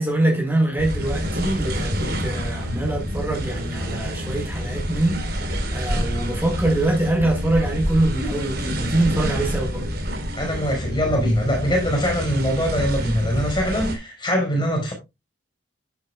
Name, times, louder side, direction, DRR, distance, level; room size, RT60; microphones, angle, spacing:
voice 1, 0.0-9.8, right 1 dB, 10° right, 4.5 m, -24 dB
sound 1, 0.8-13.9, equal, 55° right, 4.1 m, -27 dB
voice 2, 10.3-14.9, equal, 25° left, 5.0 m, -22 dB
10.5 x 10.5 x 2.3 m
head